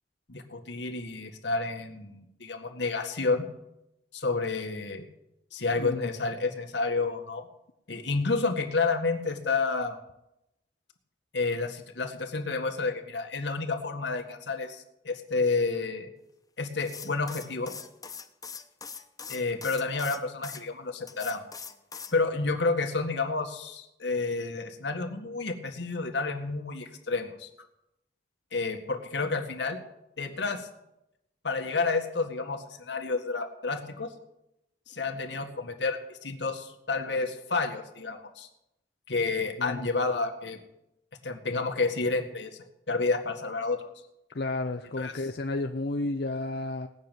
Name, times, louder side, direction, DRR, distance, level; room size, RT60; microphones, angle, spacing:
voice 1, 0.3-3.4 4.1-5.0 5.5-7.5 7.9-10.0 11.3-16.1 16.6-17.7 19.3-21.4 22.1-27.5 28.5-29.8 30.2-30.7 31.4-34.1 34.9-38.5 39.1-40.6 41.2-42.5 42.9-43.9 45.0-45.1, left 3 dB, 90° left, 5 dB, 1.8 m, -30 dB
voice 2, 5.7-6.1 39.6-39.9 44.3-46.9, left 2 dB, 65° left, 5 dB, 0.7 m, -32 dB
sound 1, 16.8-20.6 21.1-22.2, left 6 dB, 20° left, 1.0 m, -42 dB
18.0 x 6.7 x 9.2 m, 0.87 s
head